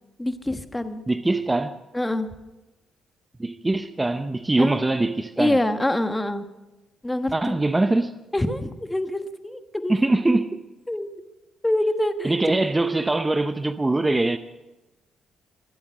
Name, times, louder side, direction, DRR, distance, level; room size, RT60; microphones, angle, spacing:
voice 1, 0.2-1.0 1.9-2.3 4.6-4.9 5.4-6.4 7.0-7.6 8.3-9.9 10.9-11.1 11.6-12.6, left 1 dB, 10° left, 1.3 m, -25 dB
voice 2, 1.1-1.8 3.4-5.6 7.3-8.1 9.9-10.6 12.2-14.4, right 2 dB, 15° right, 0.6 m, -22 dB
23.0 x 8.5 x 6.5 m
cardioid pair, 90°, 0 cm